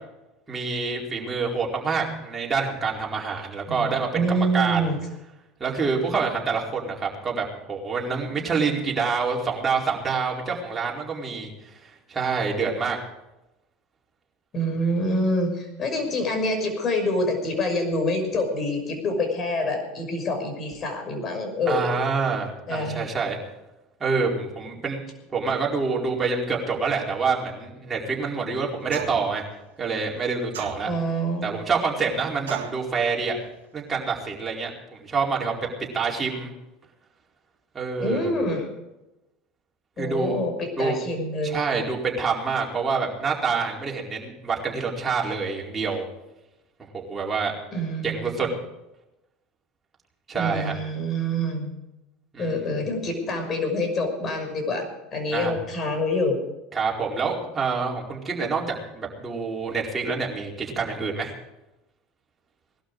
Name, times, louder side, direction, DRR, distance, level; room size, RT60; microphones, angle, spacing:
voice 1, 0.5-4.8 5.6-13.0 21.7-23.4 24.0-25.0 25.3-29.4 29.8-30.9 31.4-33.4 33.7-34.7 35.0-35.5 35.9-36.5 37.7-38.3 40.0-40.4 40.8-41.0 41.4-46.0 46.9-47.6 48.0-48.5 50.3-50.7 52.3-52.8 55.3-55.5 56.7-61.3, right 5 dB, 25° right, -2 dB, 4.7 m, -27 dB
voice 2, 3.7-5.0 14.5-21.9 22.7-23.1 30.8-31.5 38.0-38.7 40.0-41.6 47.7-48.4 50.3-51.8 52.4-54.9 55.1-56.4, left 1 dB, 35° left, 5 dB, 5.9 m, -26 dB
sound 1, 28.9-29.4 30.5-31.2 32.5-32.9, right 9 dB, 80° right, 1.7 m, -35 dB
20.0 x 12.5 x 4.9 m, 0.95 s
hypercardioid pair, 80°, 0 cm